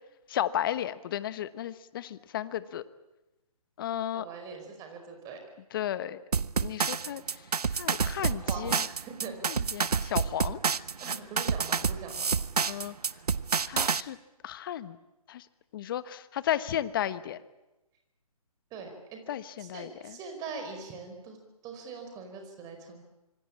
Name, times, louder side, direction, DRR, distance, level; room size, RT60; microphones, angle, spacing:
voice 1, 0.3-2.8 3.8-4.3 5.7-6.2 6.6-7.4 7.7-8.8 9.5-10.6 12.7-12.9 13.7-14.2 14.4-15.0 15.3-15.5 15.7-17.4 19.3-20.2, left 11 dB, 35° left, 14 dB, 1.2 m, -34 dB
voice 2, 4.1-5.4 8.1-9.3 9.6-9.9 11.0-12.3 18.7-19.2 19.6-21.4 21.6-23.0, right 5 dB, 20° right, 5 dB, 4.9 m, -42 dB
sound 1, 6.3-14.0, right 5 dB, 85° right, 1.0 m, -28 dB
26.0 x 24.0 x 8.7 m, 1.0 s
hypercardioid pair, 155°, 19 cm